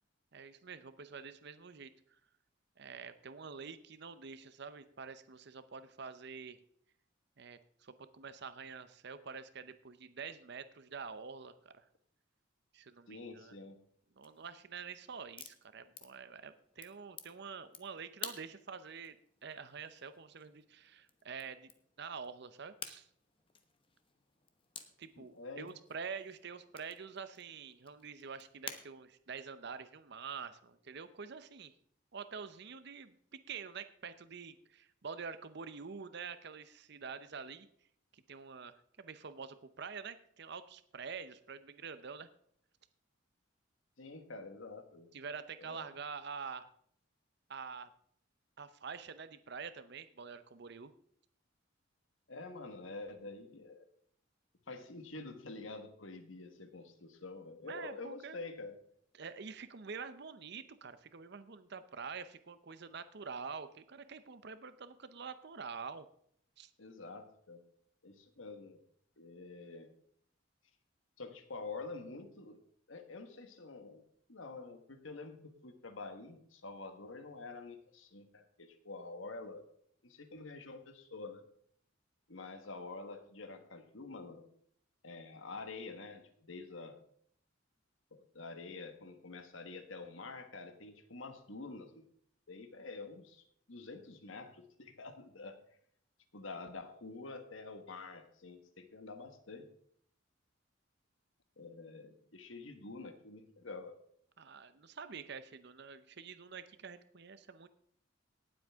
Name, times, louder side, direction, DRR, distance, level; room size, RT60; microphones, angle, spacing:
voice 1, 0.3-1.9 2.8-6.6 7.4-11.8 12.7-13.6 14.2-19.2 19.4-21.7 22.0-23.1 25.0-31.7 32.1-37.7 38.1-42.3 45.1-46.7 47.5-47.9 48.6-50.9 57.7-58.5 59.1-66.1 66.6-66.7 104.4-107.7, right 5 dB, 55° right, 12 dB, 0.7 m, -47 dB
voice 2, 13.1-13.8 25.2-25.7 44.0-45.1 45.6-45.9 52.3-53.9 54.7-58.8 66.8-67.6 68.0-68.8 69.2-69.9 71.2-72.6 72.9-74.0 74.3-79.6 80.0-81.4 82.3-84.5 85.0-87.0 88.1-92.1 92.5-95.6 96.3-99.7 101.6-104.0, left 3 dB, 80° left, 8 dB, 1.4 m, -47 dB
sound 1, 14.2-28.8, left 6 dB, 25° left, 1.0 m, -53 dB
18.0 x 7.8 x 3.6 m, 0.65 s
head